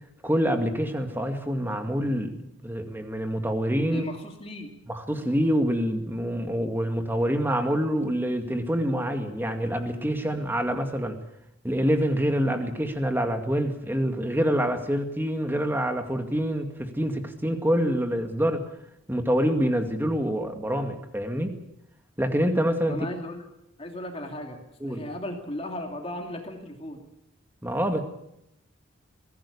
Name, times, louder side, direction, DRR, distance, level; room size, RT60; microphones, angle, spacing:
voice 1, 0.2-2.4 2.6-4.1 4.9-11.2 11.6-18.6 19.1-21.6 22.2-23.0 24.8-25.0 27.6-28.0, equal, 10° right, 5 dB, 2.2 m, -26 dB
voice 2, 3.8-4.7 22.9-23.4 23.8-27.0, left 1 dB, 30° left, 3 dB, 2.7 m, -36 dB
22.5 x 16.5 x 8.4 m, 0.82 s
head